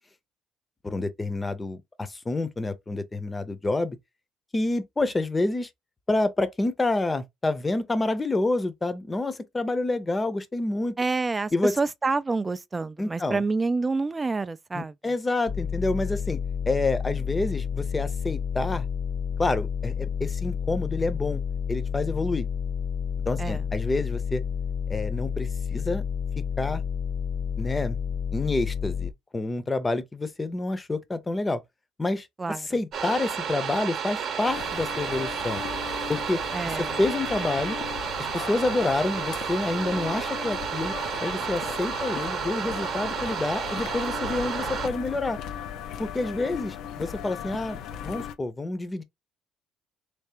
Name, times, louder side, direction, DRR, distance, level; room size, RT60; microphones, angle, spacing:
voice 1, 0.8-4.0 4.5-5.7 6.1-10.9 11.5-11.7 13.0-13.4 14.7-16.4 16.7-18.8 19.4-21.4 21.7-22.5 23.3-24.4 24.9-26.0 26.6-26.8 27.6-28.0 28.3-31.6 32.0-35.6 36.1-36.4 36.8-37.8 38.3-40.9 41.2-45.4 46.0-49.0, left 2 dB, 20° left, 0.7 m, -28 dB
voice 2, 11.0-14.9 23.4-23.6 32.4-32.7 36.5-37.0, right 3 dB, 25° right, 0.4 m, -28 dB
sound 1, 15.5-29.1, left 7 dB, 50° left, 0.9 m, -30 dB
sound 2, 32.9-44.9, right 7 dB, 55° right, 0.8 m, -31 dB
sound 3, 34.4-48.3, left 9 dB, 70° left, 0.5 m, -37 dB
3.4 x 3.2 x 2.9 m
supercardioid pair, 80°, 0 cm